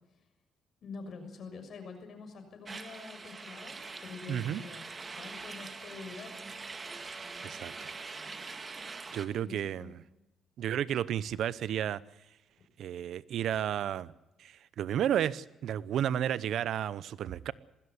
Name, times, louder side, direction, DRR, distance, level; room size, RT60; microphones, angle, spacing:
voice 1, 0.8-4.9 5.1-6.4 9.1-9.9, left 4 dB, 55° left, 6 dB, 6.5 m, -46 dB
sound 1, 2.7-9.3, right 4 dB, 35° right, 1.8 m, -43 dB
voice 2, 4.3-4.6 7.4-7.9 9.1-10.0 10.6-12.0 12.8-14.1 14.4-17.5, right 10 dB, 70° right, 19 dB, 0.8 m, -32 dB
20.5 x 16.0 x 9.7 m, 0.95 s
cardioid pair, 90°, 0 cm